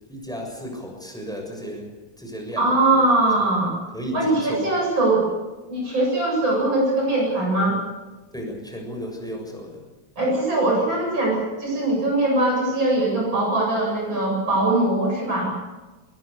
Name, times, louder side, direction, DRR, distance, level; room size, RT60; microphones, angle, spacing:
voice 1, 0.1-3.7 3.9-4.8 8.3-9.8, equal, ahead, 1 dB, 6.9 m, -34 dB
voice 2, 2.6-3.7 4.1-5.3 5.7-7.8 10.2-15.5, right 2 dB, 80° right, -2 dB, 8.9 m, -21 dB
22.5 x 21.5 x 6.9 m, 1.2 s
omnidirectional pair, 2.1 m